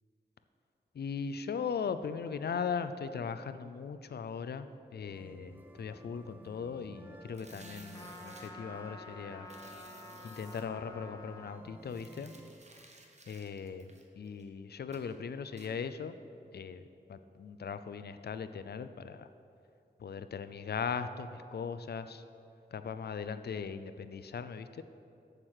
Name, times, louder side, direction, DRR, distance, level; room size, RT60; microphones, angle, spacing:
voice 1, 0.9-9.5 10.2-12.3 13.3-16.2 16.5-19.3 20.0-22.2 22.7-24.8, left 6 dB, 65° left, 11 dB, 0.4 m, -39 dB
Eglise Angoulème, 5.1-12.5, right 1 dB, 10° right, 0.7 m, -53 dB
sound 1, 7.3-8.5 9.5-10.6 11.8-14.5 14.9-15.1 15.6-15.7, right 2 dB, 40° right, 1.0 m, -57 dB
Trumpet, 7.9-11.6, left 2 dB, 20° left, 0.8 m, -50 dB
7.4 x 6.5 x 6.3 m, 2.6 s
wide cardioid pair, 85°, 18 cm